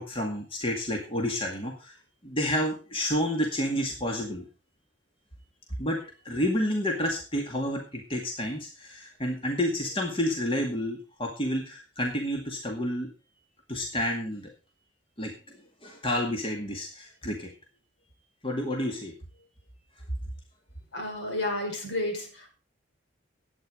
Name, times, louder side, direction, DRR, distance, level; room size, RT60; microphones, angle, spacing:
voice 1, 0.0-2.0 2.2-4.5 5.8-13.1 13.7-14.5 15.2-15.4 15.8-17.5 18.4-19.1, equal, 30° left, 1 dB, 2.2 m, -30 dB
voice 2, 20.9-22.5, left 1 dB, 65° left, 2 dB, 5.1 m, -31 dB
12.0 x 9.4 x 5.2 m, 0.34 s
head